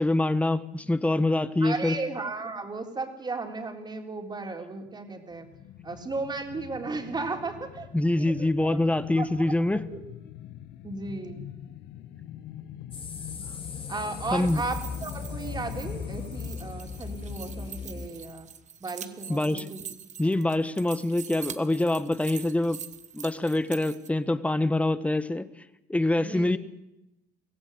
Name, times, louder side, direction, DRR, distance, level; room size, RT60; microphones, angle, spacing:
voice 1, 0.0-1.9 7.9-9.8 14.3-14.6 19.3-19.6 20.2-22.8 23.1-25.5 25.9-26.6, left 1 dB, 10° left, 13 dB, 1.2 m, -25 dB
voice 2, 1.6-5.5 5.8-7.9 8.2-8.8 9.2-10.0 10.8-11.4 13.9-18.5 18.8-19.8 26.2-26.6, right 3 dB, 25° right, 3 dB, 3.8 m, -35 dB
sound 1, 5.3-18.6 18.9-19.0, left 11 dB, 85° left, 1.3 m, -44 dB
sound 2, 12.9-18.1, left 5 dB, 30° left, 2.2 m, -38 dB
sound 3, 14.3-24.1, right 8 dB, 45° right, 1.3 m, -44 dB
23.5 x 16.5 x 8.0 m, 0.89 s
cardioid pair, 110°, 17 cm